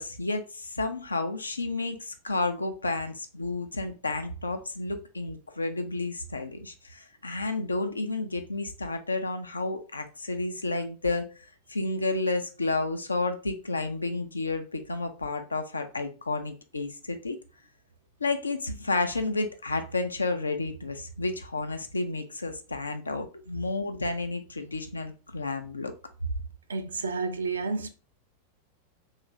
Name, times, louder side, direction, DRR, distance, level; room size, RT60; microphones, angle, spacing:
voice 1, 0.0-11.3 11.7-17.4 18.2-25.9, left 3 dB, 80° left, 0.4 m, -31 dB
voice 2, 26.7-27.9, right 4 dB, 70° right, 0.4 m, -31 dB
2.8 x 2.4 x 3.0 m
figure-of-eight pair, 90°, 0 cm